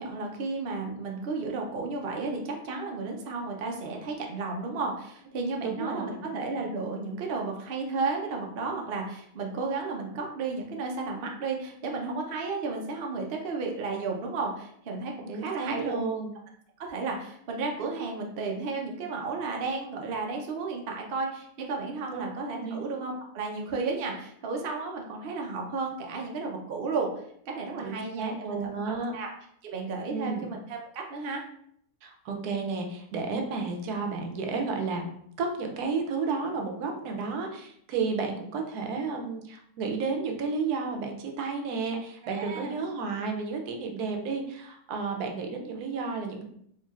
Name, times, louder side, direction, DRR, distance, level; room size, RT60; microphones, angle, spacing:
voice 1, 0.0-16.0 16.8-27.1 27.5-28.6 28.9-29.3 29.6-31.4 42.2-42.8, right 4 dB, 55° right, 1 dB, 0.6 m, -33 dB
voice 2, 5.6-6.3 15.3-16.3 21.6-21.8 22.1-22.2 22.6-22.8 27.8-29.1 30.1-30.5 32.0-35.1 35.4-46.4, right 4 dB, 85° right, 3 dB, 1.1 m, -32 dB
4.3 x 2.8 x 2.4 m, 0.68 s
omnidirectional pair, 1.6 m